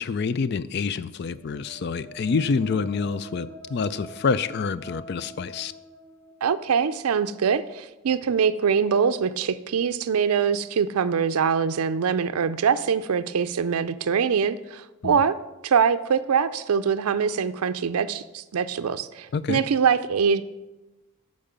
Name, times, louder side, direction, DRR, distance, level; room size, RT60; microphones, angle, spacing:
voice 1, 0.0-5.7 15.0-15.2 19.3-19.6, left 5 dB, 50° left, 16 dB, 0.3 m, -27 dB
sound 1, 1.3-7.0, right 1 dB, 20° left, 1.6 m, -46 dB
voice 2, 6.4-15.3 15.6-20.4, right 6 dB, 85° right, 12 dB, 0.4 m, -23 dB
8.7 x 5.3 x 6.8 m, 1.0 s
head